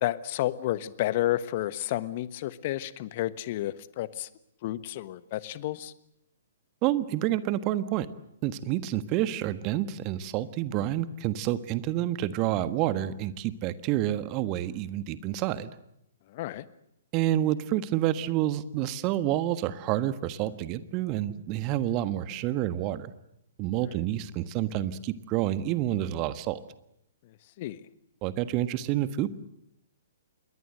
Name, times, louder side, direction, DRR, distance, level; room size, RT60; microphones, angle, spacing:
voice 1, 0.0-4.3 4.6-5.9 16.3-16.6 27.6-27.8, left 14 dB, 40° left, 16 dB, 1.2 m, -31 dB
voice 2, 6.8-8.1 8.4-15.7 17.1-23.1 23.6-26.6 28.2-29.4, right 13 dB, 30° right, 13 dB, 1.4 m, -28 dB
27.5 x 22.0 x 7.9 m, 0.78 s
figure-of-eight pair, 120°, 0 cm